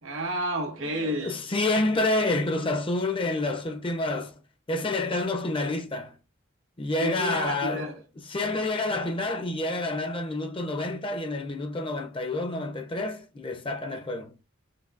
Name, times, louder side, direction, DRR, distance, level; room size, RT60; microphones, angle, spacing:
voice 1, 0.0-1.4 7.0-8.0, right 1 dB, 85° right, 1.8 m, -30 dB
voice 2, 1.0-4.3 4.7-6.1 6.8-7.9 8.2-14.3, left 2 dB, 25° left, 0.6 m, -28 dB
5.9 x 2.6 x 2.5 m
head